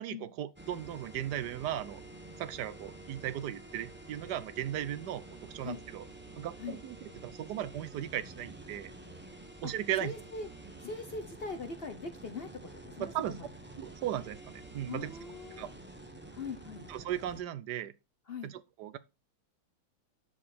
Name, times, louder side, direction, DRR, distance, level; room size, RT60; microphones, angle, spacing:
voice 1, 0.0-2.0 2.4-6.0 6.4-7.0 7.2-8.9 9.6-10.1 13.0-13.4 13.8-15.1 15.6-15.7 16.9-17.9 18.4-19.0, right 11 dB, 70° right, 1.0 m, -37 dB
sound 1, 0.6-17.4, right 2 dB, 10° right, 0.7 m, -49 dB
voice 2, 10.0-10.5 10.8-13.5 14.9-15.7 16.3-16.9 18.3-18.5, left 4 dB, 55° left, 0.6 m, -41 dB
12.0 x 4.9 x 4.3 m
omnidirectional pair, 2.2 m